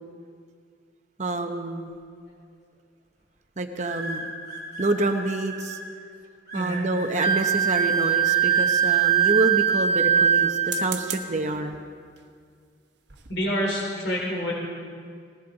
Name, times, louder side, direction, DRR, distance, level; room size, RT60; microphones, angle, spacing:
voice 1, 1.2-2.0 3.6-4.3 4.8-5.8 6.5-11.9, right 2 dB, 40° right, 5 dB, 0.8 m, -27 dB
sound 1, 2.3-2.6 3.8-5.8 6.5-7.5 8.2-9.3, right 2 dB, 60° left, 4.0 m, -37 dB
Wind instrument woodwind instrument, 7.2-10.9, right 8 dB, 45° left, 1.3 m, -21 dB
sound 2, 7.8-8.6 10.5-11.4 12.2-12.4 12.8-12.9 13.1-13.4, right 10 dB, 70° right, 1.1 m, -37 dB
voice 2, 13.3-14.5, equal, 85° left, -3 dB, 3.8 m, -27 dB
20.0 x 17.5 x 3.9 m, 2.1 s
head